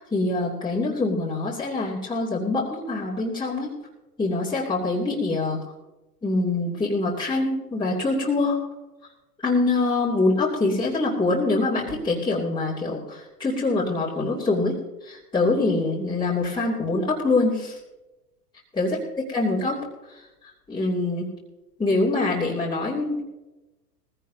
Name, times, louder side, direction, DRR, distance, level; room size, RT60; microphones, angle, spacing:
voice 1, 0.0-3.7 4.2-5.6 6.2-8.6 9.4-14.8 15.0-17.7 18.7-19.0 19.3-19.8 20.7-21.3 21.8-23.2, left 2 dB, 10° left, -7 dB, 2.8 m, -24 dB
19.5 x 15.5 x 2.8 m, 1.0 s
hypercardioid pair, 105°, 50 cm